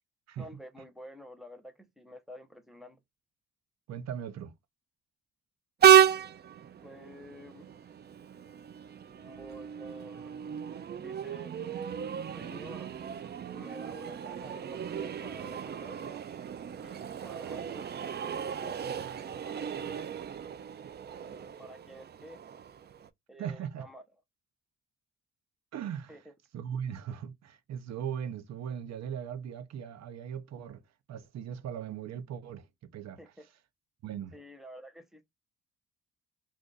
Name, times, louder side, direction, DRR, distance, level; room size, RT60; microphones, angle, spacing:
voice 1, 0.4-3.0 6.8-7.7 9.1-10.3 11.0-11.5 12.3-13.0 13.5-16.2 16.8-18.8 19.5-20.1 21.3-22.4 23.3-24.0 26.1-26.3 33.2-33.4 34.3-35.3, equal, ahead, 0.8 m, -50 dB
voice 2, 3.9-4.5 23.4-23.9 25.7-26.2 26.5-30.8 31.1-32.7 32.9-33.2 34.0-34.4, right 8 dB, 60° right, 0.7 m, -38 dB
Train, 5.8-23.1, right 9 dB, 35° right, 0.4 m, -31 dB
2.5 x 2.5 x 3.8 m
cardioid pair, 90°, 30 cm